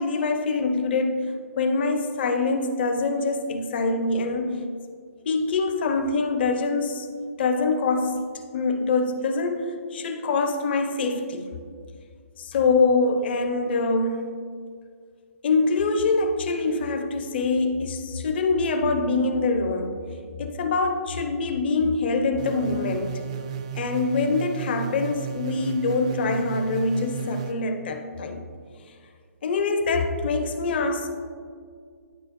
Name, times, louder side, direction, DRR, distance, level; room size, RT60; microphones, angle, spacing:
voice 1, 0.0-4.6 5.3-7.1 7.4-8.2 8.5-11.5 12.4-14.2 15.4-20.0 20.4-23.1 23.8-28.5 29.4-31.2, left 3 dB, 40° left, 6 dB, 0.6 m, -24 dB
sound 1, 22.4-27.5, right 8 dB, 25° right, 0.3 m, -34 dB
10.5 x 4.0 x 3.0 m, 2.2 s
hypercardioid pair, 165°, 8 cm